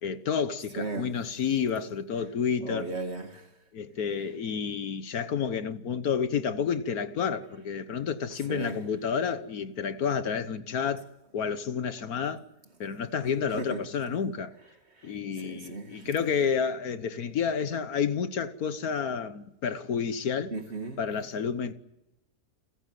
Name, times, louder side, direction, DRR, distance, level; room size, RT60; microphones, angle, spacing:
voice 1, 0.0-2.9 3.7-11.0 11.3-12.4 12.8-14.5 15.0-20.5 21.0-21.7, left 6 dB, 70° left, 1.6 m, -30 dB
voice 2, 0.8-1.1 2.6-3.5 8.5-8.8 13.5-13.8 15.0-16.1 20.5-21.0, right 2 dB, 40° right, 2.3 m, -36 dB
29.5 x 15.0 x 9.3 m
omnidirectional pair, 1.7 m